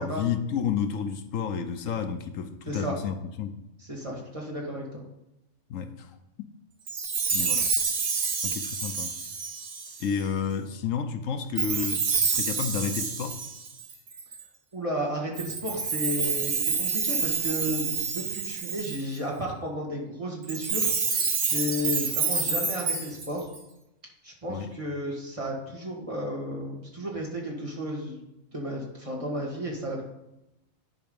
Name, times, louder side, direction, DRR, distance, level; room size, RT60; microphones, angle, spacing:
voice 1, 0.0-3.6 5.7-6.5 7.3-7.7 8.4-9.1 10.0-13.4 24.5-24.7, left 7 dB, 75° left, 8 dB, 1.1 m, -31 dB
voice 2, 3.9-5.0 14.7-20.9 21.4-23.5 24.2-28.2 28.5-30.0, equal, 25° right, -2 dB, 1.8 m, -33 dB
Chime, 6.9-10.2 11.6-14.4 15.3-19.2 20.4-23.6, right 5 dB, 80° right, 1.5 m, -28 dB
10.5 x 4.7 x 5.3 m, 0.90 s
omnidirectional pair, 1.4 m